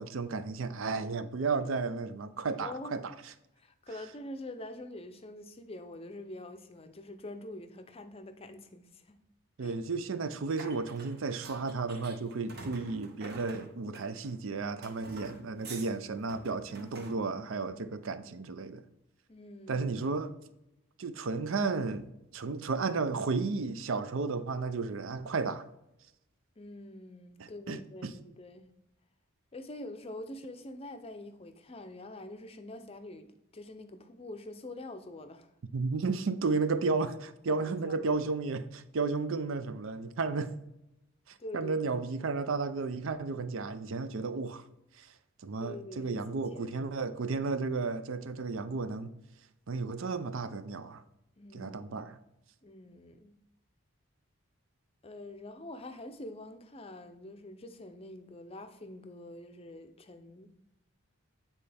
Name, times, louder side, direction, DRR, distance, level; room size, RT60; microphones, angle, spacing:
voice 1, 0.0-3.1 9.6-18.8 19.7-20.3 21.0-25.7 27.4-28.1 35.7-40.5 41.3-44.6 45.0-45.1 45.4-49.1 49.7-51.0 51.5-52.2, right 4 dB, 60° right, 0.5 m, -33 dB
voice 2, 2.6-3.0 3.6-9.2 9.6-9.8 19.3-19.9 26.6-28.7 29.5-33.3 33.5-35.5 37.5-38.0 41.4-42.1 45.6-46.9 51.4-52.1 52.6-53.4 55.0-60.5, left 1 dB, 25° left, 0.6 m, -45 dB
sound 1, 10.6-14.3 14.8-15.9 16.3-17.1, right 3 dB, 45° right, 1.1 m, -48 dB
9.0 x 4.2 x 3.4 m
head